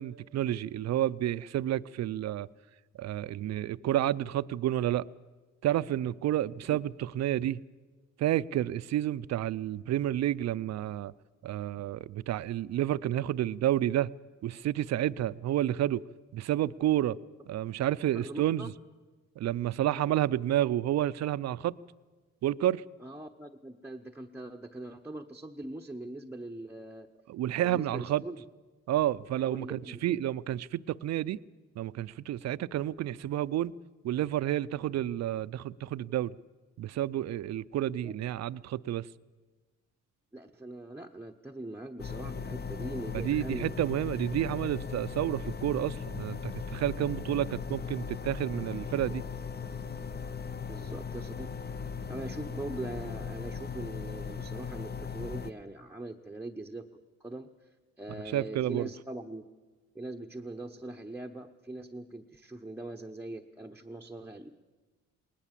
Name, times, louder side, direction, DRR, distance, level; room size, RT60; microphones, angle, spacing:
voice 1, 0.0-2.5 3.0-5.1 5.6-7.6 8.2-11.1 11.4-14.1 14.4-16.0 16.3-17.2 17.5-18.7 19.4-21.7 22.4-22.8 27.3-28.2 28.9-31.4 31.8-33.7 34.0-36.3 36.8-39.1 43.1-49.2 58.3-58.9, right 12 dB, 60° right, 0.6 m, -30 dB
voice 2, 18.1-18.7 23.0-27.1 27.6-28.4 29.4-30.3 38.0-38.1 40.3-43.7 50.7-56.9 57.2-57.5 58.0-59.4 59.9-64.5, right 2 dB, 5° right, 0.9 m, -42 dB
sound 1, 42.0-55.5, left 6 dB, 35° left, 0.8 m, -38 dB
20.0 x 19.0 x 7.5 m
cardioid pair, 90°, 30 cm